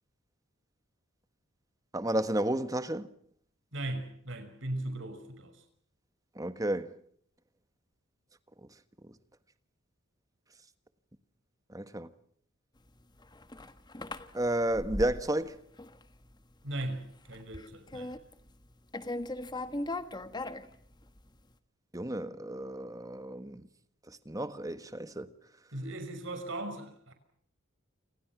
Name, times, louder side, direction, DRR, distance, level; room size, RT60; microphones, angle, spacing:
voice 1, 1.9-3.1 6.4-6.9 11.7-12.1 14.3-15.6 21.9-23.6 24.2-25.3, right 1 dB, 15° right, 1.4 m, -32 dB
voice 2, 3.7-5.5 16.6-18.1 25.7-27.1, right 1 dB, 65° right, 5.9 m, -38 dB
sound 1, 13.0-15.5 15.8-16.3 16.7-17.0 17.3-18.7 18.9-21.2, left 2 dB, 20° left, 1.5 m, -39 dB
29.0 x 26.5 x 6.1 m
head